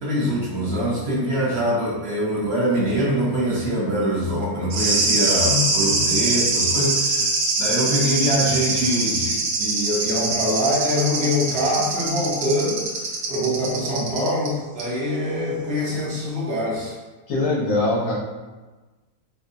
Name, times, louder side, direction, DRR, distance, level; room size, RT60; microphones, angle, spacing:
voice 1, 0.0-7.3 7.6-12.8 13.3-16.9, equal, 45° right, -6 dB, 1.1 m, -24 dB
sound 1, 4.7-14.5 14.8-14.9, right 3 dB, 75° right, 1.3 m, -23 dB
voice 2, 17.3-18.1, left 2 dB, 70° left, -5 dB, 1.6 m, -22 dB
4.4 x 3.1 x 2.7 m, 1.2 s
omnidirectional pair, 1.6 m